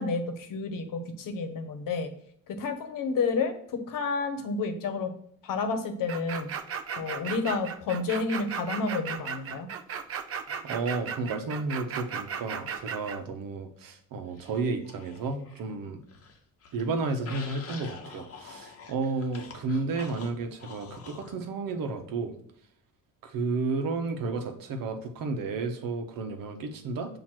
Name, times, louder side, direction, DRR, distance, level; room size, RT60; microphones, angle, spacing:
voice 1, 0.0-2.1 2.5-5.1 5.4-6.5 7.0-9.7, left 4 dB, 75° left, 7 dB, 1.0 m, -30 dB
sound 1, 6.1-13.2, right 7 dB, 45° right, 0.5 m, -35 dB
voice 2, 10.6-16.0 16.7-22.3 23.2-27.2, right 3 dB, 90° right, 5 dB, 1.0 m, -32 dB
sound 2, 14.4-15.7 16.0-21.4, left 5 dB, 45° left, 0.9 m, -47 dB
7.4 x 2.8 x 4.5 m, 0.65 s
cardioid pair, 170°, 33 cm